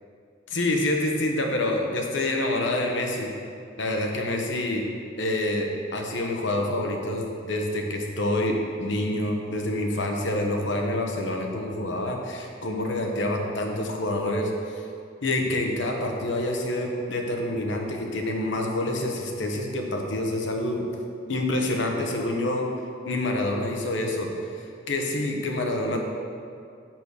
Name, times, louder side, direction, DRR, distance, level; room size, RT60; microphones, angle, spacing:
voice 1, 0.5-3.3 3.8-4.9 5.2-14.9 15.2-20.9 21.3-22.7 23.0-24.3 24.6-26.0, left 1 dB, 70° left, 2 dB, 1.1 m, -27 dB
6.1 x 6.0 x 6.5 m, 2.4 s
head